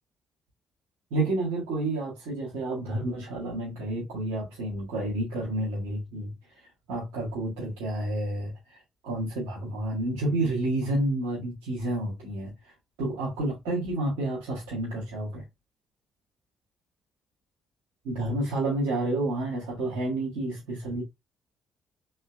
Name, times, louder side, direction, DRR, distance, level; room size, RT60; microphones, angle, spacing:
voice 1, 1.1-6.3 6.9-12.5 13.0-15.4 18.0-21.0, right 1 dB, 85° right, 1.7 m, -30 dB
4.2 x 3.5 x 2.2 m
hypercardioid pair, 55°, 0 cm